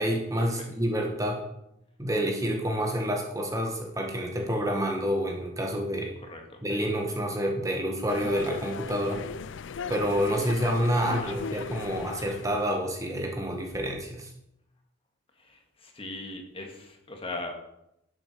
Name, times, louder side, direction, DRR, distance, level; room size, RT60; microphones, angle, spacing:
voice 1, 0.0-1.4 2.0-6.1 6.6-9.2 9.9-14.3, equal, 15° right, 2 dB, 1.3 m, -28 dB
voice 2, 6.2-6.6 11.0-11.4 15.4-17.5, left 2 dB, 25° left, 3 dB, 1.9 m, -39 dB
sound 1, 8.1-12.8, left 6 dB, 65° left, 0.4 m, -37 dB
11.0 x 7.7 x 6.7 m, 0.82 s
head